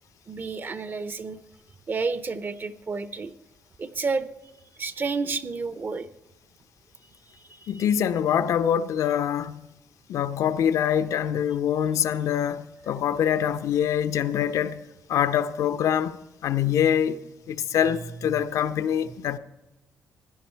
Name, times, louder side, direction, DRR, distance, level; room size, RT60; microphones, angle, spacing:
voice 1, 0.3-1.4 1.9-3.3 3.8-4.3 4.7-6.1 7.3-7.8 18.3-18.4 19.1-19.2, right 4 dB, 35° right, 0.8 m, -31 dB
voice 2, 7.7-9.6 10.1-14.8 15.1-17.2 17.5-19.4, left 9 dB, 70° left, 0.7 m, -24 dB
16.0 x 10.5 x 4.5 m
cardioid pair, 100°, 6 cm